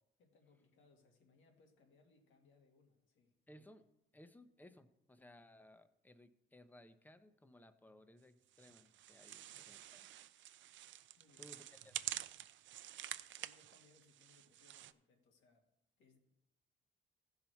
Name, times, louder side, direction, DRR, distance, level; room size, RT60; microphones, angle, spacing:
voice 1, 0.0-3.3 9.3-9.7 11.2-11.5 13.4-15.7 16.0-16.2, left 3 dB, 80° left, 3 dB, 2.0 m, -70 dB
voice 2, 3.5-3.9 4.1-10.1 11.4-12.0, left 1 dB, 10° left, 11 dB, 0.8 m, -61 dB
sound 1, 8.5-14.9, right 13 dB, 70° right, 0.5 m, -48 dB
15.0 x 5.7 x 4.6 m, 0.87 s
cardioid pair, 90°, 20 cm